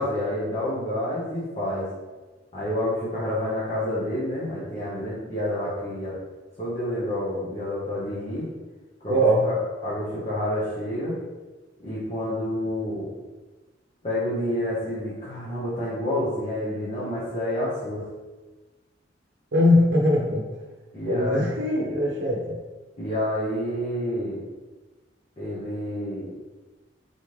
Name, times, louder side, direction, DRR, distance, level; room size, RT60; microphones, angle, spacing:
voice 1, 0.0-1.8 2.5-6.1 6.6-8.5 9.0-9.6 9.8-11.2 11.8-13.1 14.0-18.0 20.9-21.4 23.0-24.4 25.4-26.3, left 1 dB, 35° left, -9 dB, 1.1 m, -28 dB
voice 2, 9.1-9.5 19.5-20.4 21.1-22.6, left 1 dB, 80° right, -2 dB, 0.7 m, -21 dB
4.0 x 3.5 x 3.1 m, 1.2 s
head